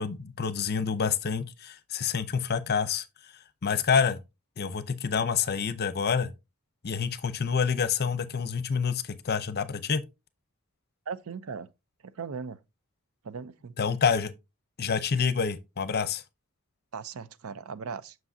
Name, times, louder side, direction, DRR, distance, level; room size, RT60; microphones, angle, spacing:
voice 1, 0.0-3.3 3.6-4.2 4.6-6.3 6.8-10.0 13.8-14.3 14.8-16.2, left 6 dB, 50° left, 0.6 m, -27 dB
voice 2, 11.1-11.7 12.0-12.6 13.2-13.8 16.9-18.2, right 5 dB, 80° right, 0.6 m, -38 dB
7.4 x 6.2 x 2.6 m
head